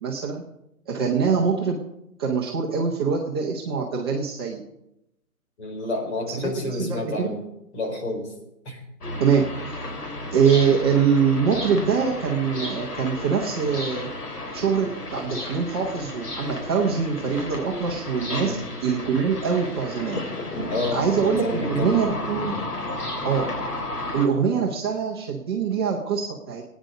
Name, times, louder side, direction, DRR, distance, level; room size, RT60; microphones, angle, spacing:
voice 1, 0.0-0.4 0.9-1.8 2.2-4.6 6.3-7.3 9.2-9.9 10.3-14.1 14.5-20.2 20.9-22.6 23.2-23.5 24.1-26.6, right 6 dB, 15° right, -2 dB, 1.0 m, -24 dB
voice 2, 5.6-7.4 7.7-8.3 8.6-8.8 18.3-18.6 20.7-21.0 21.4-22.1, left 2 dB, 45° left, 1 dB, 4.6 m, -29 dB
sound 1, 9.0-24.3, left 1 dB, 80° left, 3.3 m, -33 dB
17.5 x 9.4 x 5.3 m, 0.85 s
hypercardioid pair, 155°, 46 cm